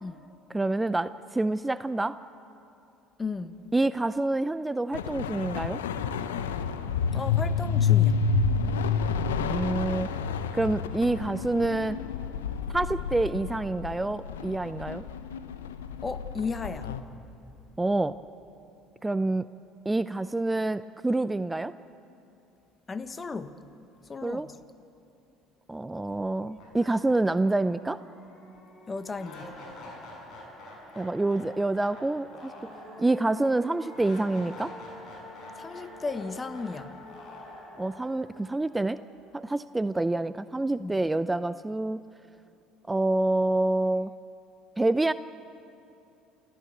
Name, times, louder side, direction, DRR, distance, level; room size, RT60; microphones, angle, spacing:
voice 1, 0.5-2.1 3.7-5.8 9.4-10.1 10.5-12.0 12.7-15.0 17.8-18.2 19.0-19.5 19.9-21.7 24.2-24.5 25.7-28.0 31.0-32.5 33.0-34.7 37.8-39.0 39.3-42.0 42.9-44.1 44.8-45.1, right 2 dB, 15° right, 14 dB, 0.5 m, -27 dB
voice 2, 3.2-3.6 7.1-8.3 16.0-16.9 22.9-23.6 24.1-24.6 28.9-29.6 35.6-37.0 40.8-40.9, left 4 dB, 25° left, 12 dB, 1.2 m, -35 dB
sound 1, 4.9-17.0, left 6 dB, 85° left, 0.9 m, -29 dB
sound 2, 26.1-26.2 26.6-39.6, left 1 dB, 55° left, 7.0 m, -46 dB
29.0 x 14.0 x 7.9 m, 2.8 s
hypercardioid pair, 65°, 0 cm